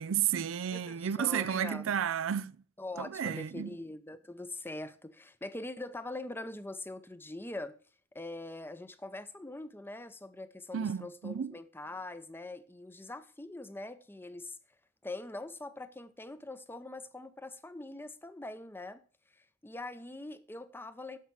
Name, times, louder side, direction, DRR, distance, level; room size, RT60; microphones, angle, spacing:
voice 1, 0.0-2.6 3.0-3.7 10.7-11.5, right 8 dB, 90° right, 0.4 m, -32 dB
voice 2, 0.7-1.9 2.8-7.8 8.1-14.6 15.0-19.0 19.3-21.2, left 2 dB, 10° left, 0.7 m, -43 dB
11.5 x 7.1 x 4.7 m
head